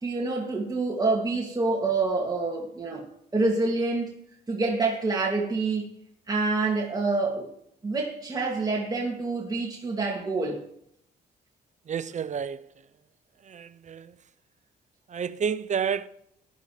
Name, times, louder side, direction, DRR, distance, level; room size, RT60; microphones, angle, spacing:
voice 1, 0.0-3.1 3.3-4.2 4.5-5.9 6.3-7.5 7.8-10.6, right 3 dB, 20° right, 2.5 m, -27 dB
voice 2, 11.9-12.7 13.4-14.1 15.1-16.1, right 7 dB, 45° right, 0.8 m, -30 dB
13.5 x 11.0 x 3.3 m
cardioid pair, 85°, 18 cm